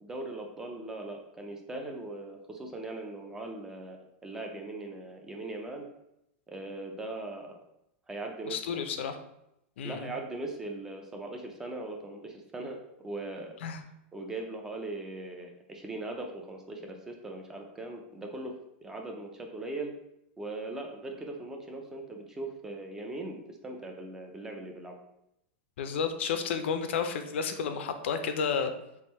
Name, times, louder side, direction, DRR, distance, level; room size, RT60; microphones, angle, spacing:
voice 1, 0.0-5.9 6.5-7.5 8.1-8.8 9.8-13.5 14.1-18.5 18.8-19.9 20.4-24.9, right 2 dB, 10° right, 2 dB, 0.3 m, -40 dB
voice 2, 8.5-9.2 9.8-10.1 13.6-13.8 25.8-28.7, left 6 dB, 75° left, 8 dB, 0.5 m, -31 dB
3.5 x 2.6 x 4.1 m, 0.83 s
supercardioid pair, 175°, 6 cm